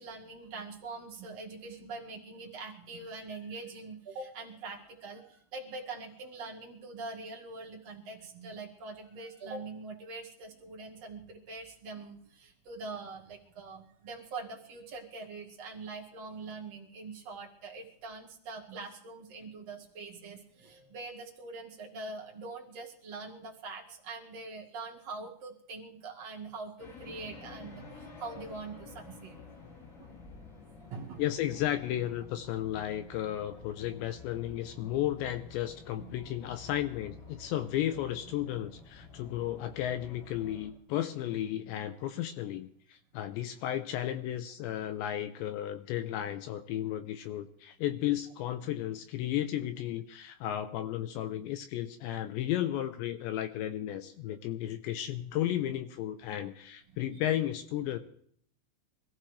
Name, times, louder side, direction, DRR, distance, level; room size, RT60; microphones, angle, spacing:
voice 1, 0.0-29.4 30.0-30.1 30.9-31.2 36.0-36.1 38.5-38.6 39.2-39.4 56.9-57.0, right 3 dB, 50° right, 0 dB, 2.1 m, -43 dB
sound 1, 26.8-40.7, left 4 dB, 65° left, 8.6 m, -51 dB
voice 2, 31.2-58.0, left 12 dB, 80° left, 9 dB, 2.6 m, -34 dB
25.0 x 15.0 x 3.3 m, 0.64 s
omnidirectional pair, 5.9 m